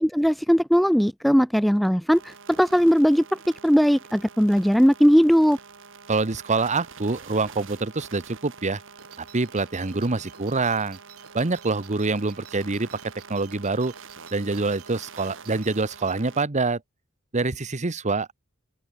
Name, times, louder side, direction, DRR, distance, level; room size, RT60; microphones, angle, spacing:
voice 1, 0.0-3.2 3.6-5.6, equal, ahead, 0.4 m, -19 dB
sound 1, 2.1-16.4, right 5 dB, 60° right, 7.2 m, -46 dB
voice 2, 6.1-8.8 9.2-11.0 11.3-12.9 13.3-13.9 14.3-16.8 17.3-18.3, right 3 dB, 30° right, 1.1 m, -25 dB
sound 2, 9.0-16.1, right 9 dB, 80° right, 5.5 m, -51 dB
open air
head